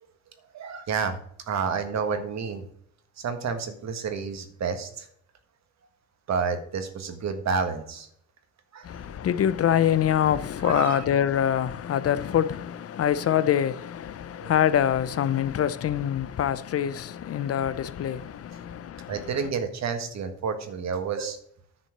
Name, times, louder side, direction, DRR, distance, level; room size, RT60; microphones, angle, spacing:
voice 1, 0.5-1.2 1.5-2.6 3.2-5.1 6.3-8.1 8.7-8.9 10.6-11.0 14.4-14.6 17.4-17.5 19.1-21.4, right 5 dB, 60° right, 1.6 m, -30 dB
voice 2, 8.8-19.1, left 10 dB, 50° left, 0.6 m, -25 dB
10.0 x 4.4 x 7.3 m
cardioid pair, 90°, 30 cm